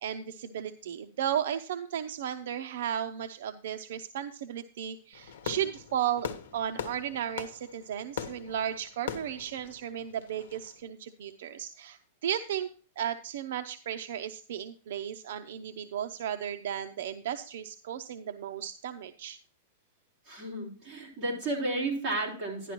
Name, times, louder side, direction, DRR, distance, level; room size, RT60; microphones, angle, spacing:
voice 1, 0.0-12.7 13.0-19.4, right 10 dB, 60° right, 8 dB, 0.6 m, -35 dB
Fireworks, 5.1-10.7, left 7 dB, 75° left, 1.2 m, -41 dB
voice 2, 20.3-22.7, right 2 dB, 15° right, -7 dB, 3.8 m, -32 dB
11.5 x 10.5 x 3.0 m, 0.41 s
supercardioid pair, 175°, 0 cm